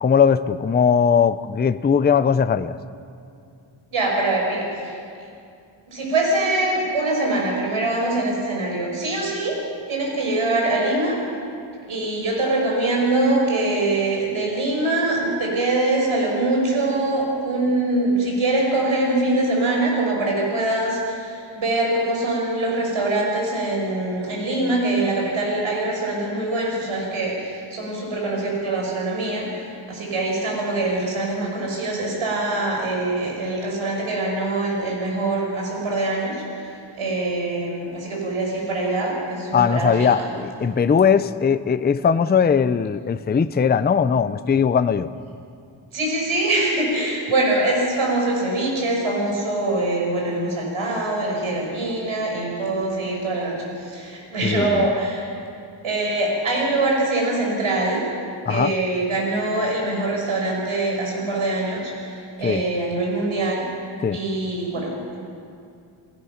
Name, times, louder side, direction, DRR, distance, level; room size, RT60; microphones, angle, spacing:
voice 1, 0.0-2.8 39.5-45.1 54.4-54.9 58.5-58.7 62.4-62.6 64.0-64.2, left 7 dB, 20° left, 13 dB, 0.4 m, -19 dB
voice 2, 3.9-5.0 5.9-9.6 9.9-11.2 11.9-36.7 37.0-40.3 45.9-55.3 55.8-58.0 58.5-63.6 64.1-65.2, right 2 dB, 85° right, -1 dB, 5.3 m, -23 dB
29.0 x 16.5 x 5.8 m, 2.4 s
wide cardioid pair, 155°, 48 cm